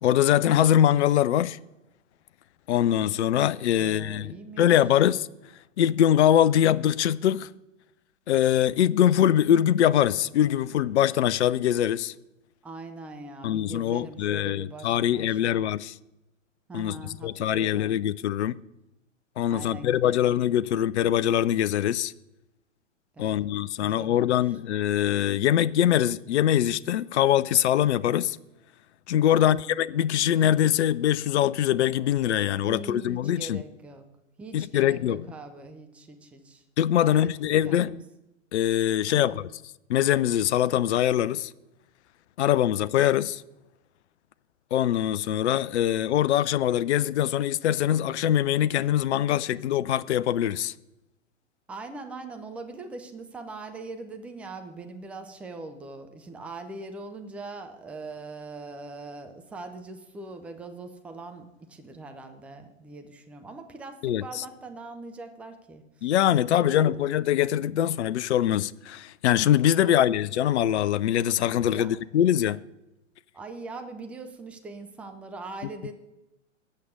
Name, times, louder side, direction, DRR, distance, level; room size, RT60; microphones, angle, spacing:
voice 1, 0.0-1.6 2.7-5.3 5.8-7.5 8.3-12.1 13.4-16.0 16.7-16.9 17.2-18.6 19.4-22.1 23.2-28.4 29.1-33.6 34.5-35.2 36.8-38.0 38.5-39.4 39.9-41.5 42.4-43.4 44.7-50.7 64.0-64.4 66.0-72.6, left 11 dB, 60° left, 0.5 m, -23 dB
voice 2, 3.8-4.7 12.6-15.7 16.7-18.0 19.5-20.3 23.1-23.5 23.8-24.5 29.3-29.7 32.6-34.0 34.4-36.6 37.0-37.3 37.6-38.0 39.1-39.4 51.7-66.1 66.6-66.9 69.8-70.1 71.6-72.0 73.3-75.9, right 3 dB, 5° right, 0.4 m, -41 dB
8.3 x 6.4 x 8.2 m
figure-of-eight pair, 110°, 38 cm